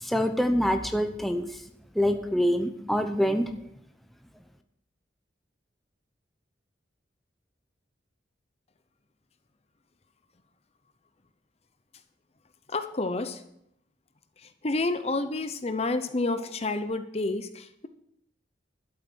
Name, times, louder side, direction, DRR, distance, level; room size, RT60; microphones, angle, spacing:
voice 1, 0.0-1.5 1.9-3.5, equal, ahead, 6 dB, 0.7 m, -25 dB
voice 2, 12.7-13.4 14.6-17.9, left 2 dB, 35° left, 10 dB, 0.7 m, -29 dB
12.0 x 7.8 x 6.2 m, 0.76 s
head